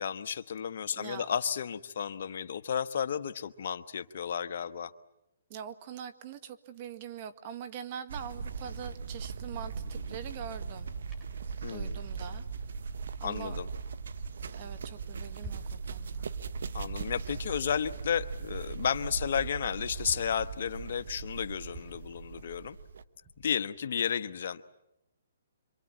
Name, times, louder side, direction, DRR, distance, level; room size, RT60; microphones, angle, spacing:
voice 1, 0.0-4.9 11.6-12.0 13.2-13.7 16.7-22.8 23.4-24.6, left 7 dB, 60° left, 12 dB, 1.2 m, -33 dB
voice 2, 0.9-1.3 5.5-10.9 11.7-12.4 13.2-13.6 14.5-16.3, right 8 dB, 40° right, 11 dB, 1.7 m, -43 dB
sound 1, 8.1-23.0, right 5 dB, 70° right, 1.2 m, -39 dB
sound 2, 9.0-12.1 12.3-12.4 12.8-14.1 14.6-15.9 16.1-18.7 19.1-19.2 19.5-20.5 21.2-23.6, right 1 dB, 20° right, 6.6 m, -52 dB
27.5 x 24.0 x 8.6 m, 0.86 s
hypercardioid pair, 145°, 0 cm